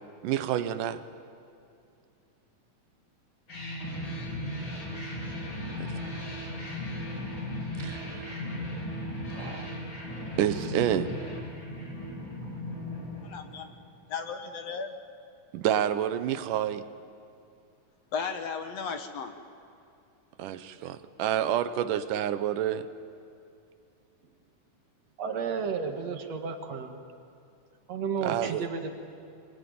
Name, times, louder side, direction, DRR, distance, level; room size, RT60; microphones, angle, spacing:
voice 1, 0.2-1.0 5.8-6.2 7.8-8.4 9.3-9.7 10.4-11.2 15.5-16.9 20.4-22.9 28.2-28.7, right 10 dB, 80° right, 12 dB, 2.5 m, -29 dB
sound 1, 3.5-14.0, left 1 dB, 35° left, 5.6 m, -36 dB
voice 2, 13.2-13.7 14.1-14.9 18.1-19.3, left 5 dB, 60° left, 6 dB, 2.1 m, -35 dB
voice 3, 25.2-27.0 27.9-28.9, right 6 dB, 60° right, 5 dB, 2.5 m, -32 dB
25.0 x 22.5 x 9.4 m, 2.6 s
omnidirectional pair, 3.7 m